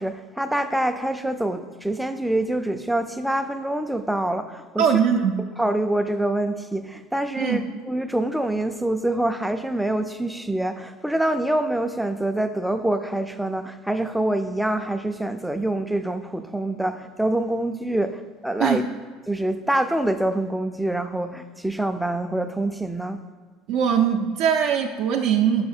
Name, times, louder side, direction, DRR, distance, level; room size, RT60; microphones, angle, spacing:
voice 1, 0.0-4.8 5.6-7.6 7.9-18.8 19.3-23.2, right 1 dB, ahead, 8 dB, 0.4 m, -25 dB
voice 2, 4.8-5.4 7.4-7.6 18.6-18.8 23.7-25.7, right 8 dB, 65° right, 2 dB, 0.4 m, -21 dB
5.7 x 4.7 x 4.3 m, 1.5 s
supercardioid pair, 115°, 0 cm